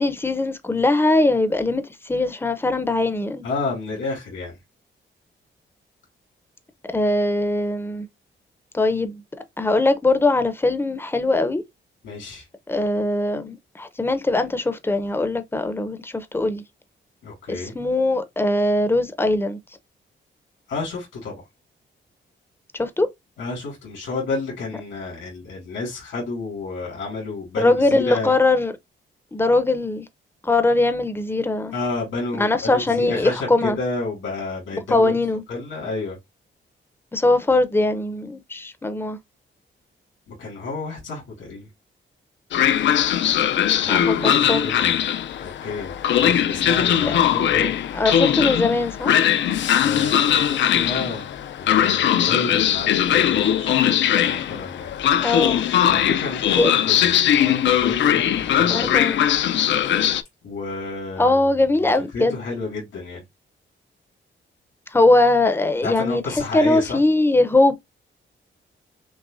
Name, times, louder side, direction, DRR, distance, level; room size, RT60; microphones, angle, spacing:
voice 1, 0.0-3.4 6.9-8.1 8.7-9.2 9.6-11.6 12.7-16.6 17.5-19.6 22.7-23.1 27.6-28.7 29.3-30.1 30.4-31.7 32.4-33.8 34.9-35.4 37.1-39.2 43.9-44.7 48.0-49.1 55.2-55.6 56.6-57.0 58.7-59.2 61.2-62.4 64.9-66.2 66.5-67.8, left 2 dB, 10° left, 0.5 m, -21 dB
voice 2, 3.4-4.6 12.0-12.5 17.2-17.7 20.7-21.4 23.4-28.3 31.7-35.1 35.5-36.2 40.3-41.7 43.8-45.0 45.4-48.1 49.8-51.3 51.6-54.9 55.9-59.0 60.4-61.9 62.1-63.2 65.8-67.0, left 3 dB, 85° left, 2.4 m, -31 dB
Train, 42.5-60.2, left 10 dB, 70° left, 0.4 m, -20 dB
6.1 x 2.1 x 2.5 m
cardioid pair, 125°, 20 cm